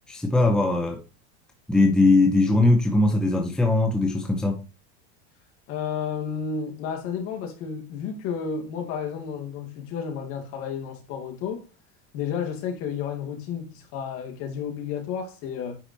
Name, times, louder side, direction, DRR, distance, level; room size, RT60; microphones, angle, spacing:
voice 1, 0.1-1.0 1.7-4.6, left 2 dB, ahead, 0.9 m, -20 dB
voice 2, 5.7-11.6 12.1-15.8, left 7 dB, 45° left, 2.6 m, -32 dB
9.9 x 4.9 x 2.8 m
supercardioid pair, 165°, 31 cm